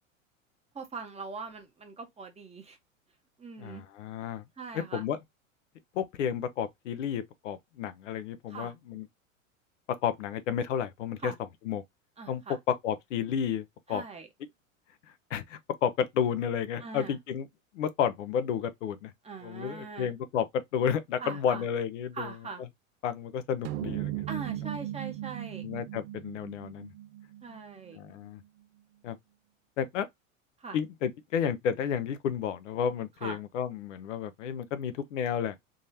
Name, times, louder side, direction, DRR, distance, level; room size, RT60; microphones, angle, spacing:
voice 1, 0.7-2.8 3.4-3.8 4.6-5.0 8.5-8.7 11.2-11.4 12.2-12.6 13.9-14.3 16.8-17.2 19.2-20.1 21.2-21.7 22.1-22.6 24.3-25.6 27.4-28.0 30.6-30.8 33.2-33.4, right 4 dB, 15° right, 1.0 m, -41 dB
voice 2, 3.6-4.4 4.7-5.2 6.0-9.1 10.0-11.3 11.6-11.8 12.3-12.4 12.7-14.0 15.3-17.5 17.7-19.1 19.4-20.5 20.7-22.3 23.0-24.2 25.6-26.9 27.9-28.4 29.0-29.2 29.8-30.1 30.7-35.6, left 8 dB, 65° left, 0.7 m, -31 dB
sound 1, 23.6-28.3, right 14 dB, 45° right, 0.4 m, -37 dB
3.7 x 3.1 x 2.7 m
hypercardioid pair, 90°, 40 cm